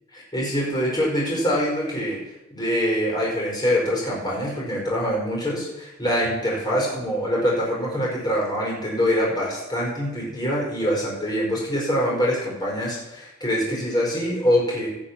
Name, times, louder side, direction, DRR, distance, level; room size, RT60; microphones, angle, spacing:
voice 1, 0.1-2.2 2.5-14.9, equal, 20° left, -4 dB, 4.9 m, -24 dB
17.0 x 6.4 x 6.0 m, 0.94 s
head